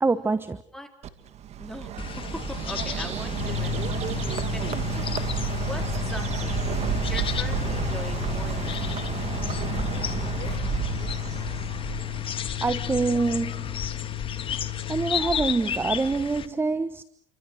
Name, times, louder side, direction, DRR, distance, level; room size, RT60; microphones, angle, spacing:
voice 1, 0.0-0.6 12.6-13.9 14.9-17.0, right 3 dB, 15° right, 1.1 m, -25 dB
Bird, 1.0-12.4, right 9 dB, 40° right, 2.3 m, -31 dB
voice 2, 1.6-4.2 4.5-5.3 5.6-6.7 7.0-9.6, left 1 dB, 5° left, 4.1 m, -41 dB
sound 1, 2.0-16.5, left 8 dB, 35° left, 1.9 m, -34 dB
sound 2, 3.3-15.2, left 16 dB, 70° left, 1.3 m, -34 dB
29.0 x 24.0 x 6.4 m
supercardioid pair, 110°, 16 cm